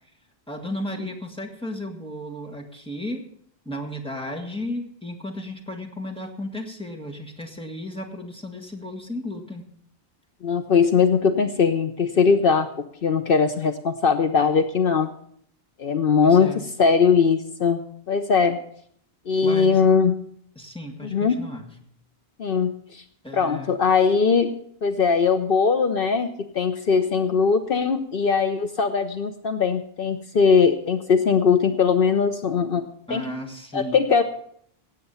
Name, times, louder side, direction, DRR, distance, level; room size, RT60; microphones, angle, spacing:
voice 1, 0.5-3.2 3.7-9.6 16.2-16.7 19.4-19.8 20.6-21.7 23.2-23.7 33.1-34.0, left 1 dB, 5° left, 2 dB, 1.8 m, -34 dB
voice 2, 10.4-15.1 15.8-17.8 18.1-18.6 19.3-20.2 21.0-21.4 22.4-23.0 23.3-24.5 24.8-32.8 33.1-33.3 33.7-34.2, left 5 dB, 65° left, 8 dB, 1.0 m, -20 dB
17.0 x 8.5 x 5.6 m, 0.65 s
omnidirectional pair, 1.0 m